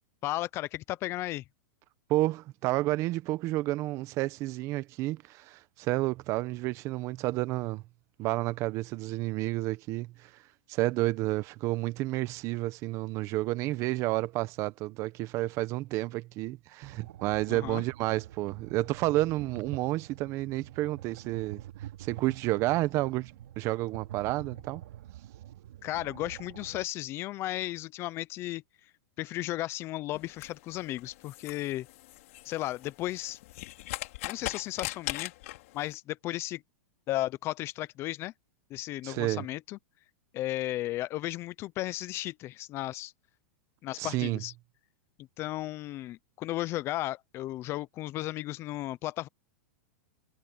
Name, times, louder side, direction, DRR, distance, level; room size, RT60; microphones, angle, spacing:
voice 1, 0.2-1.4 17.5-17.8 25.8-28.6 29.2-31.9 32.4-33.4 34.3-35.3 35.7-36.6 37.1-38.3 38.7-39.8 40.3-43.1 43.8-44.5 45.4-49.3, left 16 dB, 30° left, 0.6 m, -34 dB
voice 2, 2.1-7.8 8.2-10.3 10.7-21.6 22.0-24.8 39.0-39.4 44.0-44.4, right 18 dB, 35° right, 1.0 m, -30 dB
sound 1, 16.8-26.8, right 12 dB, 70° right, 3.4 m, -46 dB
sound 2, 30.1-35.9, left 18 dB, 60° left, 2.6 m, -40 dB
supercardioid pair, 150°, 9 cm